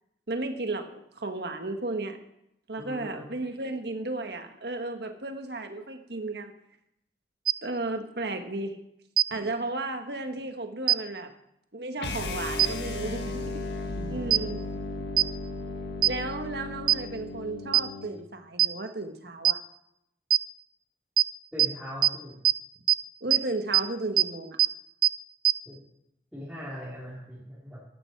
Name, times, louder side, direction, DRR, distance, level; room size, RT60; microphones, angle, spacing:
voice 1, 0.3-2.2 2.7-6.5 7.6-8.8 9.3-11.3 11.7-13.6 14.1-14.6 16.1-19.6 23.2-24.6, right 2 dB, 70° right, 6 dB, 1.5 m, -34 dB
voice 2, 2.8-3.3 14.0-14.4 21.5-22.4 25.7-25.8 26.3-27.8, equal, 5° right, -10 dB, 3.7 m, -40 dB
sound 1, 7.5-7.6 9.2-9.3 10.9-11.0 12.6-12.7 14.3-14.4 15.2-15.3 16.0-16.1 16.9-17.0 17.7-17.8 18.6-18.7 19.5-19.6 20.3-20.4 21.2-21.3 21.6-21.7 22.0-22.1 22.5-22.6 22.9-23.0 23.3-23.4 23.7-23.8 24.2-24.3 24.6-24.7 25.0-25.1 25.5-25.6, right 13 dB, 50° right, 0.5 m, -19 dB
sound 2, 12.0-18.1, left 2 dB, 75° left, 1.5 m, -35 dB
14.5 x 12.0 x 4.6 m, 0.79 s
head